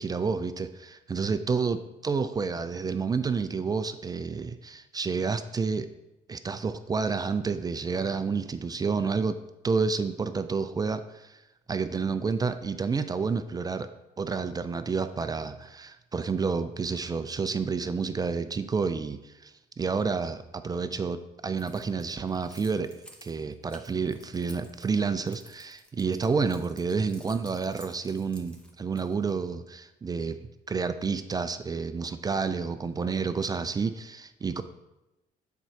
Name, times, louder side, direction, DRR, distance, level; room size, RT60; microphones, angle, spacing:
voice 1, 0.0-5.9 6.3-9.4 9.6-11.0 11.7-13.9 14.2-22.9 23.2-30.4 30.7-34.6, right 5 dB, 25° right, 11 dB, 0.4 m, -29 dB
Keys jangling, 21.6-29.3, equal, 5° left, 1.0 m, -53 dB
7.2 x 4.5 x 4.6 m, 0.97 s
cardioid pair, 110°, 17 cm